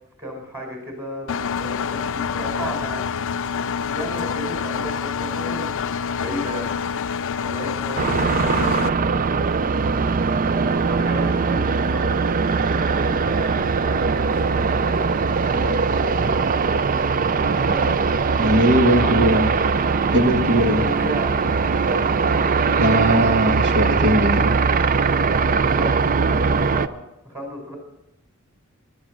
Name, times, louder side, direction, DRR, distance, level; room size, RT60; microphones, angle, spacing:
voice 1, 0.2-2.1 2.3-3.1 3.9-6.7 7.4-9.0 10.4-12.3 12.6-16.3 17.4-19.4 20.5-23.4 25.2-27.0 27.2-27.8, equal, 15° right, 2 dB, 4.5 m, -34 dB
Engine, 1.3-8.9, left 6 dB, 60° left, 0.5 m, -27 dB
sound 1, 8.0-26.9, right 4 dB, 40° right, 0.5 m, -20 dB
voice 2, 18.4-19.5 20.1-20.8 22.8-24.5, right 1 dB, 55° right, 5 dB, 1.5 m, -19 dB
15.5 x 11.5 x 6.2 m, 0.86 s
head